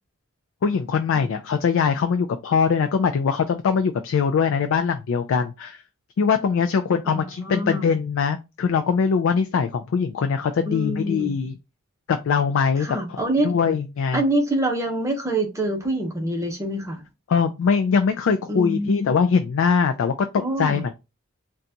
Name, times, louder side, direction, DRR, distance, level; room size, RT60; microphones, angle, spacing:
voice 1, 0.6-5.8 6.2-11.5 12.1-14.2 17.3-20.9, left 6 dB, 65° left, 0.3 m, -22 dB
voice 2, 7.1-7.9 10.6-11.3 12.8-13.5 14.1-17.0 18.5-19.2 20.4-20.8, right 1 dB, 15° right, 0.8 m, -25 dB
3.8 x 2.3 x 2.7 m
head